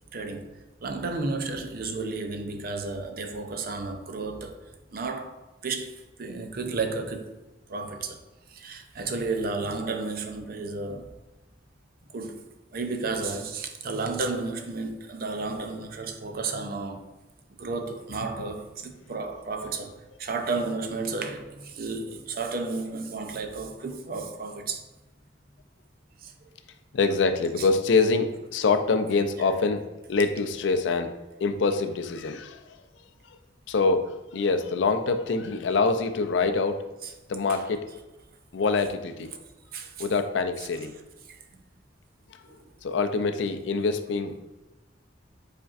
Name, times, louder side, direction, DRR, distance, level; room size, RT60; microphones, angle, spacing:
voice 1, 0.1-4.6 4.9-7.3 7.7-8.2 8.5-11.1 12.1-12.4 12.7-17.0 17.5-19.9 20.2-24.8 26.2-26.3 27.6-27.7 37.0-37.1 37.5-37.7 39.7-40.1 41.3-41.6 42.5-42.6, right 3 dB, 50° right, 0.5 m, -32 dB
voice 2, 26.9-29.8 30.1-32.6 33.7-36.8 37.3-37.8 38.5-39.3 40.0-40.9 42.8-44.3, left 4 dB, 70° left, 0.4 m, -25 dB
5.1 x 4.3 x 2.4 m
head